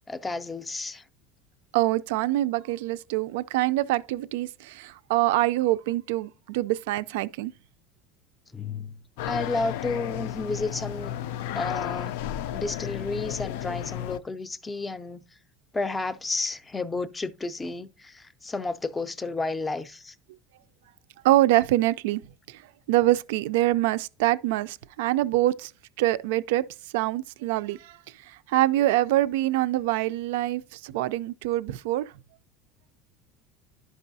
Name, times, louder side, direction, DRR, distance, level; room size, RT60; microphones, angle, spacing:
voice 1, 0.1-1.0 8.5-9.0 9.2-11.2 11.5-12.2 12.5-15.2 15.7-20.1, left 3 dB, 10° left, 0.4 m, -32 dB
voice 2, 1.7-7.5 21.2-22.2 22.5-22.6 22.9-25.7 26.0-26.6 26.9-28.0 28.2-32.1, right 16 dB, 85° right, 0.4 m, -25 dB
sound 1, 9.2-14.2, left 11 dB, 75° left, 0.4 m, -33 dB
11.5 x 5.4 x 2.6 m
cardioid pair, 165°, 0 cm